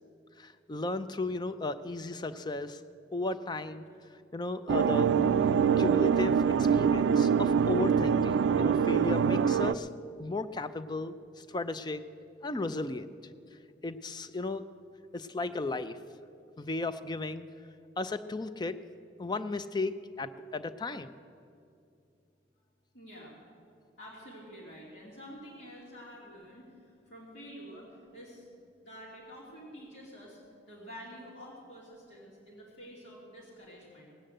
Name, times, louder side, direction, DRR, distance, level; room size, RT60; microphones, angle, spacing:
voice 1, 0.4-2.8 3.1-3.8 4.3-5.2 5.8-9.9 10.2-12.1 12.4-13.1 13.8-14.6 15.1-16.0 16.6-17.5 18.0-18.8 19.2-21.1, left 3 dB, 25° left, 12 dB, 0.4 m, -35 dB
sound 1, 4.7-9.7, right 7 dB, 90° right, 0.3 m, -24 dB
voice 2, 22.9-23.4 24.0-28.5 28.8-30.4 30.7-34.1, equal, 75° left, -6 dB, 2.8 m, -48 dB
18.0 x 8.3 x 7.7 m, 2.5 s
head